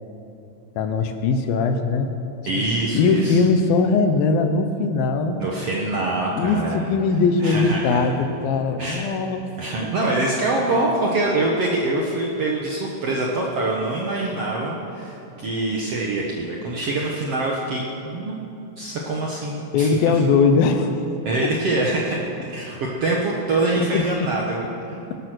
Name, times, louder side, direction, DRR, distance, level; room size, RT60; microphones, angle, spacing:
voice 1, 0.8-2.1 2.9-5.4 6.4-9.4 9.8-9.9 19.7-20.9 21.4-21.5 23.7-24.3 25.1-25.2, left 4 dB, 75° left, 7 dB, 2.6 m, -20 dB
voice 2, 2.4-3.4 5.4-6.8 7.4-8.0 8.8-9.1 9.6-18.3 18.8-19.9 21.2-25.0, right 2 dB, 60° right, -2 dB, 1.6 m, -24 dB
18.5 x 12.5 x 6.2 m, 2.8 s
omnidirectional pair, 4.4 m